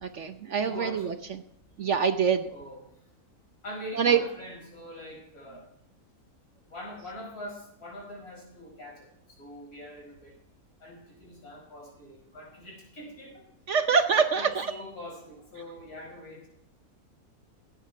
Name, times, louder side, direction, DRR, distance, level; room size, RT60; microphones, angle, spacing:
voice 1, 0.0-1.4 1.8-2.5 3.9-4.2 13.7-14.7, right 6 dB, 60° right, 8 dB, 1.0 m, -25 dB
voice 2, 0.6-1.1 2.5-2.8 3.6-5.6 6.7-9.1 9.4-10.3 10.8-13.5 14.4-16.5, left 1 dB, 75° left, 0 dB, 5.5 m, -43 dB
17.5 x 9.1 x 4.7 m, 0.77 s
omnidirectional pair, 1.6 m